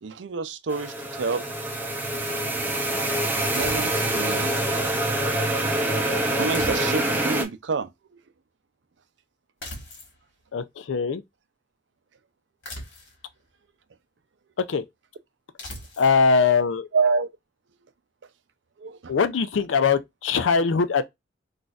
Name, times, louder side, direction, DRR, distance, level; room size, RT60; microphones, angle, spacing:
voice 1, 0.0-1.5 3.5-4.8 6.1-7.9 16.9-17.3 18.8-19.1, right 4 dB, 70° right, 0.5 m, -28 dB
sound 1, 0.7-7.5, right 1 dB, 10° right, 0.6 m, -25 dB
sound 2, 3.5-4.2 6.5-7.3 9.6-10.2 12.6-13.3 15.6-16.2, left 1 dB, 70° left, 1.5 m, -39 dB
voice 2, 10.5-11.2 14.6-14.8 16.0-16.9 19.1-21.0, left 5 dB, 90° left, 0.5 m, -21 dB
4.0 x 2.5 x 2.3 m
head